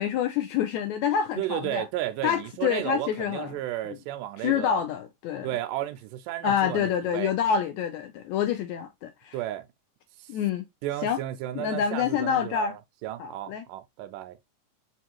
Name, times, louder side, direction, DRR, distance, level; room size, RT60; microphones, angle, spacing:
voice 1, 0.0-1.8 2.2-3.5 3.9-4.0 4.4-5.5 6.4-9.3 10.3-10.7 11.0-11.2 11.5-12.7 13.2-13.6, left 8 dB, 80° left, 1.7 m, -27 dB
voice 2, 1.4-4.8 5.4-7.3 9.3-9.7 10.2-10.3 10.8-14.4, right 14 dB, 85° right, 2.2 m, -33 dB
5.2 x 2.4 x 2.8 m
omnidirectional pair, 3.7 m